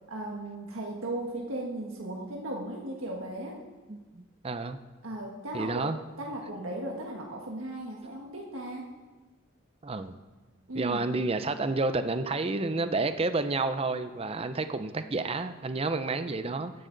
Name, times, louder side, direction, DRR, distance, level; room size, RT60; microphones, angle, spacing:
voice 1, 0.1-3.6 5.0-5.9 6.2-8.9 10.7-11.2, right 1 dB, 80° right, -1 dB, 1.5 m, -36 dB
voice 2, 3.9-4.8 5.5-6.0 9.8-10.2 10.7-16.7, right 3 dB, 30° right, 10 dB, 0.6 m, -30 dB
17.5 x 11.0 x 3.9 m, 1.3 s
head